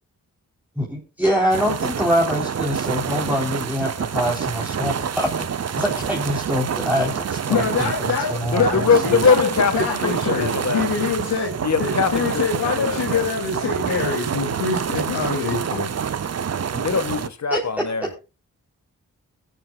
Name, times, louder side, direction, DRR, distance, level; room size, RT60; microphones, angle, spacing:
voice 1, 0.8-9.2 17.5-17.6, equal, 5° right, 4.0 m, -25 dB
sound 1, 1.5-17.3, right 7 dB, 45° right, 0.8 m, -27 dB
voice 2, 7.5-10.5 10.7-11.5 11.8-15.9, left 5 dB, 90° left, 2.6 m, -25 dB
voice 3, 8.5-10.8 11.6-13.2 16.7-18.1, left 5 dB, 50° left, 1.7 m, -22 dB
24.0 x 9.2 x 2.4 m
supercardioid pair, 45°, 35 cm